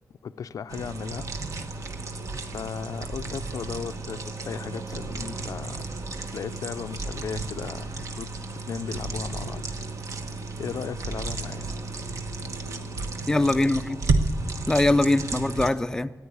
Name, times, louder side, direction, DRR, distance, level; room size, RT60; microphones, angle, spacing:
voice 1, 0.1-1.3 2.5-6.1 6.3-8.4 8.7-9.7 10.6-11.7, left 7 dB, 90° left, 12 dB, 0.4 m, -36 dB
sound 1, 0.7-15.7, right 3 dB, 65° right, 1.2 m, -32 dB
voice 2, 13.3-14.0 14.7-16.1, left 2 dB, 10° left, 10 dB, 0.4 m, -22 dB
14.5 x 10.0 x 8.4 m, 1.3 s
wide cardioid pair, 175°, 6 cm